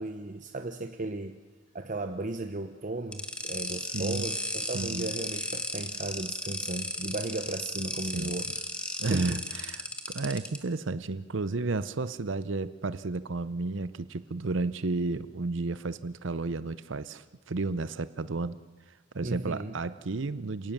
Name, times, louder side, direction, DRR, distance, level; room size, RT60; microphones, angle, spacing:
voice 1, 0.0-1.4 1.7-9.4 19.2-19.8, right 2 dB, 40° right, 7 dB, 0.9 m, -36 dB
sound 1, 3.1-10.6, left 1 dB, 5° left, 1.7 m, -35 dB
voice 2, 3.9-4.2 4.7-5.1 8.1-8.4 9.0-18.6 18.9-20.7, right 3 dB, 65° right, 14 dB, 0.7 m, -32 dB
27.5 x 18.0 x 7.3 m, 1.3 s
head